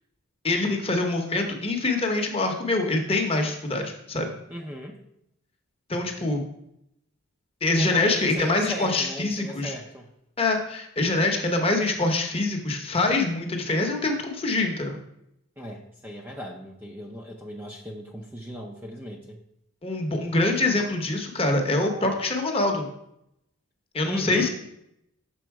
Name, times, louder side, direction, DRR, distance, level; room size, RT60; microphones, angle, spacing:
voice 1, 0.4-4.3 5.9-6.4 7.6-9.8 10.4-15.0 19.8-22.9 23.9-24.5, left 2 dB, 25° left, 3 dB, 0.8 m, -25 dB
voice 2, 4.5-5.0 7.7-10.1 15.6-19.4 24.0-24.5, equal, 10° right, 0 dB, 0.5 m, -37 dB
6.2 x 4.0 x 4.6 m, 0.80 s
head